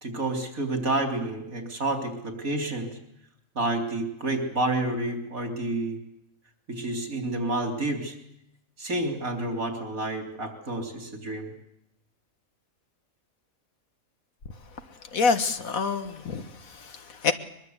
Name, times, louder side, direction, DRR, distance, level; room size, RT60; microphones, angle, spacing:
voice 1, 0.0-3.0 3.6-6.0 6.7-8.2 8.8-11.5, right 2 dB, 90° right, 4 dB, 3.8 m, -29 dB
voice 2, 15.1-17.3, left 5 dB, 90° left, 8 dB, 2.0 m, -27 dB
22.5 x 22.0 x 8.1 m, 0.78 s
omnidirectional pair, 1.4 m